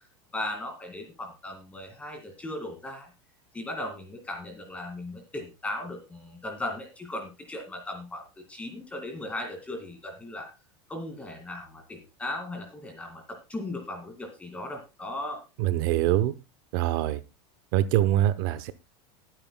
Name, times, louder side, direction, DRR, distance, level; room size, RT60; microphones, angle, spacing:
voice 1, 0.3-3.1 3.5-8.2 8.5-10.5 10.9-15.4, left 1 dB, 10° left, 4 dB, 2.1 m, -37 dB
voice 2, 15.6-16.3 16.7-17.2 17.7-18.7, right 13 dB, 50° right, 14 dB, 0.8 m, -24 dB
21.5 x 9.0 x 2.2 m, 0.26 s
supercardioid pair, 175°, 14 cm